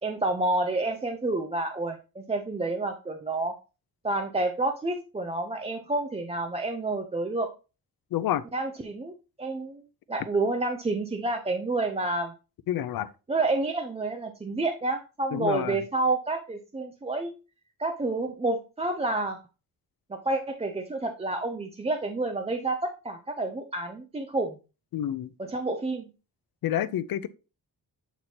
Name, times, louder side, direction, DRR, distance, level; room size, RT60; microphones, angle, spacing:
voice 1, 0.0-3.5 4.0-7.5 8.5-12.3 13.3-17.3 17.8-19.4 20.1-24.6 25.4-26.1, right 2 dB, 15° right, 0.5 m, -29 dB
voice 2, 8.1-8.4 12.7-13.1 15.3-15.8 24.9-25.3 26.6-27.3, left 11 dB, 70° left, 0.6 m, -28 dB
8.1 x 4.3 x 2.9 m
wide cardioid pair, 140°, 37 cm